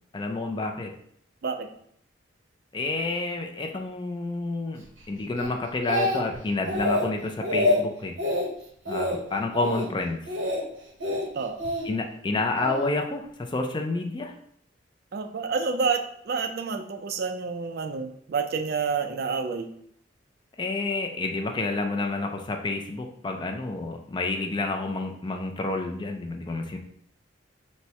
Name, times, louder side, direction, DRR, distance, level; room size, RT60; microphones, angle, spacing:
voice 1, 0.1-0.9 2.7-8.2 8.9-10.2 11.8-14.3 20.6-26.8, left 2 dB, 25° left, 4 dB, 0.4 m, -29 dB
Speech, 5.4-6.4 6.7-7.1 7.4-7.8 8.2-8.5 8.9-9.2 9.5-9.9 10.3-10.6 11.0-11.8 12.6-12.8, left 1 dB, 90° right, 1.0 m, -26 dB
voice 2, 15.1-19.7, right 5 dB, 55° right, 7 dB, 0.4 m, -29 dB
4.2 x 2.1 x 4.5 m, 0.67 s
head